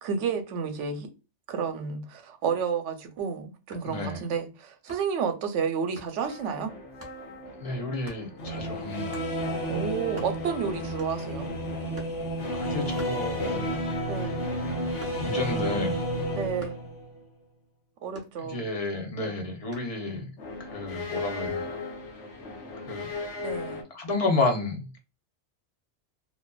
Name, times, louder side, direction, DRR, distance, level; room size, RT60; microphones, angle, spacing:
voice 1, 0.0-1.1 1.5-6.7 9.7-11.5 14.1-14.5 16.3-16.8 18.0-18.6 23.4-23.8, right 6 dB, 90° right, 0.9 m, -31 dB
sound 1, 3.7-4.0 4.9-5.2 6.0-6.2 7.0-7.2 8.0-8.3 9.1-9.4 9.8-9.9 10.0-10.6 11.0-11.4 11.9-12.3 13.0-13.7 14.1-15.5 16.6-16.9 18.1-18.8 19.7-20.0, equal, 15° right, 0.6 m, -47 dB
voice 2, 3.9-4.2 7.6-9.2 12.5-13.7 15.2-16.0 18.4-20.3 20.6-21.8 22.9-23.1 23.9-25.0, left 2 dB, 40° left, 0.6 m, -31 dB
sound 2, 6.2-17.2 20.4-23.8, equal, 80° left, 1.0 m, -32 dB
2.6 x 2.1 x 2.2 m
omnidirectional pair, 1.2 m